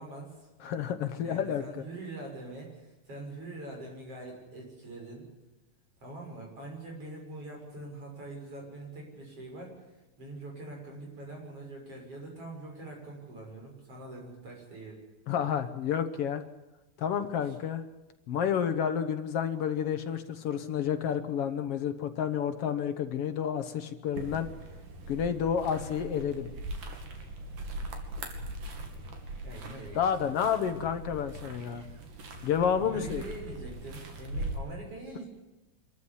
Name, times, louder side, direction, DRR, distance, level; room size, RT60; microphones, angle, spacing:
voice 1, 0.0-0.5 1.2-5.3 6.0-9.7 10.2-15.0 15.4-15.5 17.4-17.5 29.4-30.0 32.7-35.3, right 2 dB, 45° right, 0 dB, 7.2 m, -43 dB
voice 2, 0.6-1.6 15.3-16.4 17.0-17.8 18.3-24.5 25.1-26.5 29.9-31.9 32.4-33.2, left 8 dB, 60° left, 9 dB, 1.6 m, -30 dB
sound 1, 24.1-34.6, right 1 dB, 75° right, 4.1 m, -41 dB
25.5 x 14.0 x 10.0 m, 1.1 s
omnidirectional pair, 3.8 m